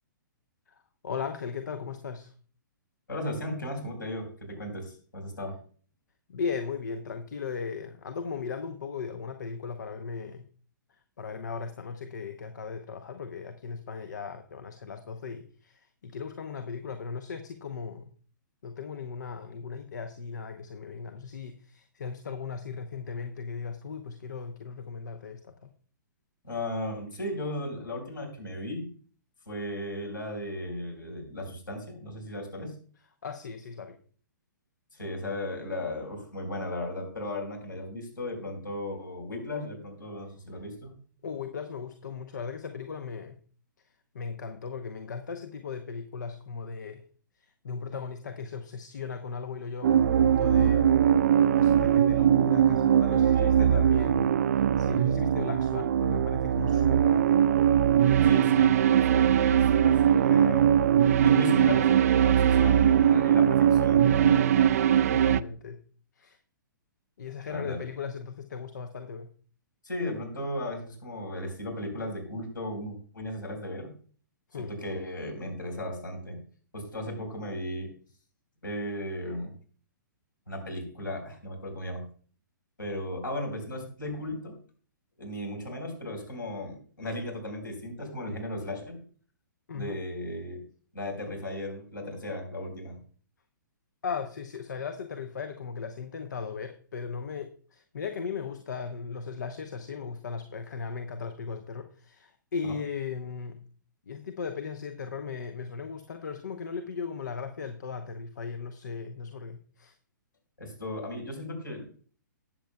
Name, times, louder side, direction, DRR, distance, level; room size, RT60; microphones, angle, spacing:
voice 1, 1.0-2.3 6.3-10.5 10.9-18.1 18.6-25.7 33.2-34.0 41.2-43.4 44.1-47.0 47.4-50.9 51.6-54.3 54.8-57.4 65.1-65.8 66.2-66.4 67.2-69.3 74.5-74.7 89.7-90.0 94.0-103.6 104.1-109.9, left 5 dB, 60° left, 7 dB, 0.9 m, -37 dB
voice 2, 3.1-5.6 26.4-28.9 29.5-32.7 34.9-40.9 53.3-54.2 58.2-60.7 61.2-64.4 67.5-67.8 69.8-73.9 74.6-76.4 76.7-77.9 78.6-79.5 80.5-82.1 82.8-84.5 85.2-89.0 89.7-90.6 90.9-93.0 102.7-102.8 110.6-111.8, left 1 dB, 80° left, 1 dB, 4.5 m, -36 dB
sound 1, 49.8-65.4, right 9 dB, 50° right, 0.3 m, -21 dB
18.5 x 7.4 x 2.3 m, 0.44 s
figure-of-eight pair, 120°, 11 cm